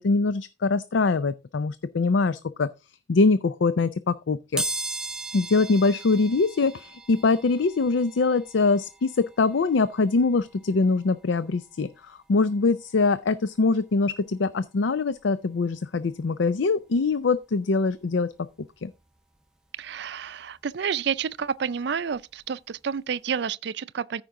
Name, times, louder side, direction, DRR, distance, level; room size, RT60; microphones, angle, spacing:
voice 1, 0.0-2.7 3.1-4.6 5.3-18.3 18.8-18.9, left 3 dB, 80° left, 0.5 m, -23 dB
sound 1, 4.6-15.2 15.7-15.8 16.9-17.1 17.3-19.4 19.8-22.4 22.8-22.9 23.3-23.4, right 1 dB, 5° right, 0.5 m, -39 dB
voice 2, 19.8-24.2, right 7 dB, 65° right, 0.4 m, -30 dB
14.0 x 5.1 x 3.7 m
head